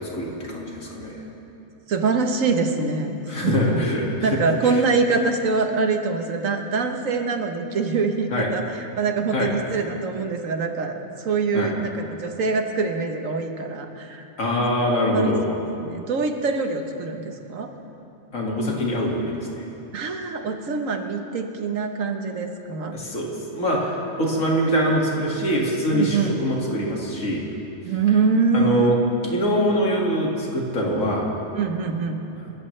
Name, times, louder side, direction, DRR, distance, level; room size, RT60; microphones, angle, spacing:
voice 1, 0.1-1.2 3.3-4.3 8.3-8.5 9.3-9.5 11.5-11.7 14.4-15.5 18.3-19.6 22.9-27.4 28.5-29.0 29.3-31.2, equal, 90° left, -2 dB, 2.7 m, -23 dB
voice 2, 1.9-3.9 4.2-14.3 15.1-15.3 15.8-17.7 19.9-22.9 25.9-26.4 27.8-28.9 31.5-32.2, right 4 dB, 85° right, 5 dB, 1.5 m, -24 dB
27.5 x 14.0 x 3.3 m, 2.9 s
omnidirectional pair, 1.3 m